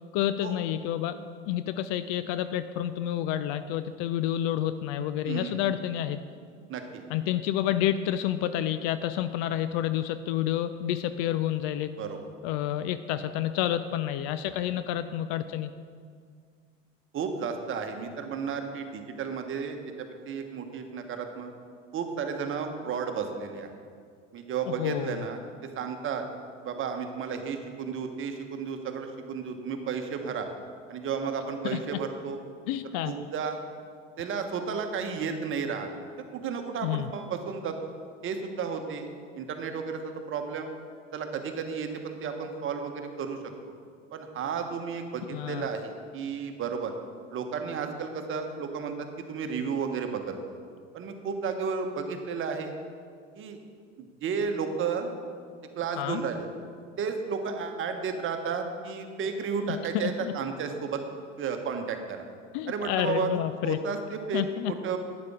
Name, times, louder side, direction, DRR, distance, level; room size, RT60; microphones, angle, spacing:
voice 1, 0.1-1.2 1.5-6.2 7.1-11.9 12.4-15.7 24.7-25.3 31.7-31.8 32.7-33.1 36.8-37.1 45.3-45.7 56.0-56.2 59.9-60.3 62.5-63.8 64.3-64.7, left 11 dB, 45° left, 12 dB, 0.5 m, -29 dB
voice 2, 5.2-5.6 6.7-7.0 12.0-12.2 17.1-21.5 21.9-23.7 24.3-25.4 25.7-26.2 26.6-30.5 30.9-32.4 33.0-33.6 34.2-35.9 36.3-37.7 38.2-40.7 41.1-43.4 44.1-46.9 47.3-50.4 50.9-52.7 53.3-53.6 54.0-55.1 55.7-56.5 57.0-61.0 61.4-62.2 62.7-63.3 63.6-65.0, right 6 dB, 35° right, 5 dB, 1.2 m, -33 dB
11.5 x 9.6 x 3.7 m, 2.1 s
figure-of-eight pair, 75°, 37 cm